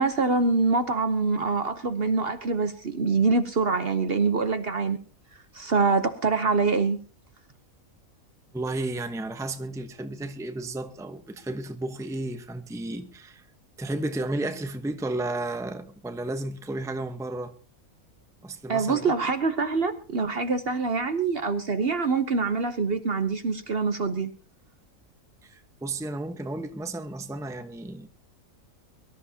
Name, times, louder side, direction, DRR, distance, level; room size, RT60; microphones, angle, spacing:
voice 1, 0.0-5.0 5.5-7.0 18.7-24.3, right 4 dB, 45° right, 1.0 m, -25 dB
voice 2, 8.5-13.4 13.8-17.5 18.4-19.1 25.4-28.1, right 2 dB, 5° right, 0.8 m, -33 dB
23.5 x 13.0 x 2.8 m
omnidirectional pair, 1.5 m